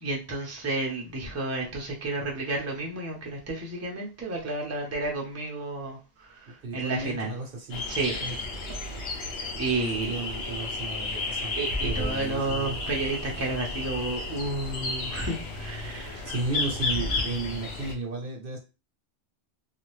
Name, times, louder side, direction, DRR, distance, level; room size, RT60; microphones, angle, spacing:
voice 1, 0.0-7.3 7.9-8.2 8.9-10.6 11.6-16.3 16.9-17.1, right 2 dB, 15° right, 0.6 m, -31 dB
voice 2, 6.6-7.8 8.2-8.3 9.9-11.5 11.8-12.8 16.2-18.6, right 3 dB, 60° right, 0.9 m, -33 dB
sound 1, 7.7-17.9, left 3 dB, 80° left, 1.1 m, -33 dB
2.8 x 2.4 x 3.1 m
omnidirectional pair, 1.1 m